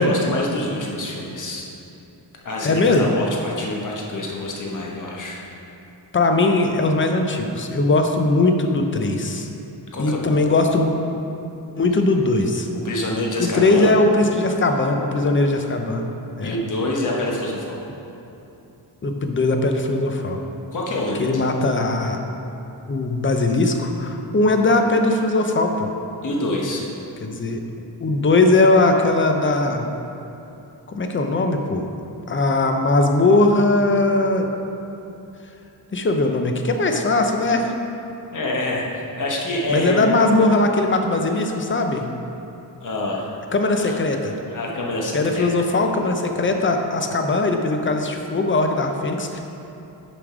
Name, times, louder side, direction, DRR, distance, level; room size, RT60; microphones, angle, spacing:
voice 1, 0.0-1.7 2.4-5.4 9.9-10.2 12.8-13.9 16.4-17.8 20.7-21.4 26.2-26.9 38.3-40.1 42.8-43.4 43.8-44.0 44.5-45.7, left 1 dB, 45° left, -2 dB, 1.2 m, -26 dB
voice 2, 2.6-3.1 6.1-9.5 10.0-10.9 11.8-12.7 13.4-16.0 16.4-16.6 19.0-20.4 21.2-22.2 22.9-25.9 27.2-27.6 28.0-29.9 30.9-31.9 32.3-34.5 35.9-37.7 39.7-42.1 43.5-44.4 45.1-49.4, left 2 dB, 30° left, 4 dB, 0.6 m, -19 dB
7.1 x 5.1 x 4.9 m, 2.9 s
wide cardioid pair, 140°, 42 cm